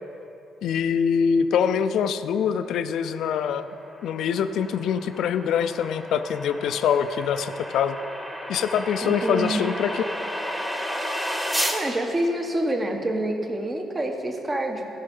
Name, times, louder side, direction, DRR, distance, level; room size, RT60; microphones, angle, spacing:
voice 1, 0.6-3.7 4.0-8.0 8.5-10.0, left 7 dB, 75° left, 11 dB, 0.4 m, -24 dB
sound 1, 3.1-11.8, equal, 10° right, 1.5 m, -32 dB
voice 2, 9.0-9.7 11.7-14.9, right 1 dB, 25° right, 3 dB, 1.2 m, -27 dB
15.5 x 5.6 x 5.4 m, 2.8 s
cardioid pair, 90°, 0 cm